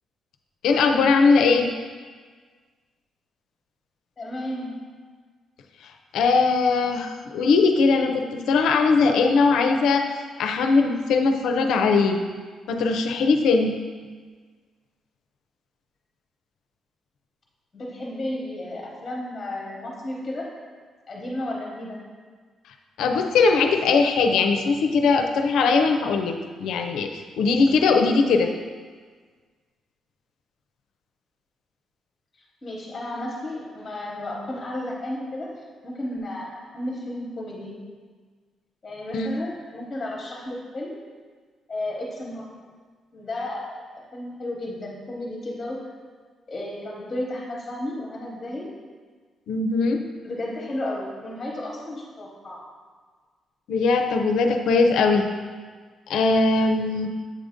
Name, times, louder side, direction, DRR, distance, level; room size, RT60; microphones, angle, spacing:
voice 1, 0.6-1.7 6.1-10.1 10.4-12.2 12.7-13.8 23.0-28.5 39.1-39.4 49.5-50.0 53.7-55.3 56.1-57.1, left 4 dB, 90° left, 5 dB, 0.4 m, -20 dB
voice 2, 4.2-4.9 17.7-20.5 21.1-22.1 32.6-35.5 35.8-37.8 38.8-40.9 41.7-42.5 43.1-43.7 44.1-45.8 46.5-48.7 50.2-52.6, left 1 dB, 20° left, -3 dB, 0.9 m, -33 dB
7.5 x 2.6 x 4.9 m, 1.5 s
cardioid pair, 170°, 0 cm